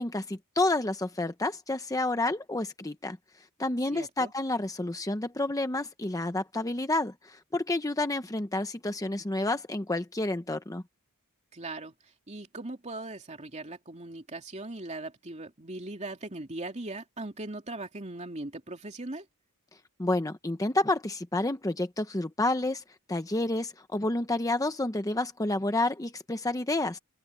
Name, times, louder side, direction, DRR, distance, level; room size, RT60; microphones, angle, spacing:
voice 1, 0.0-3.2 3.6-10.8 20.0-22.8 23.1-27.0, left 2 dB, 15° left, 0.8 m, -29 dB
voice 2, 3.9-4.3 11.5-19.3, right 2 dB, 30° right, 2.7 m, -39 dB
open air
head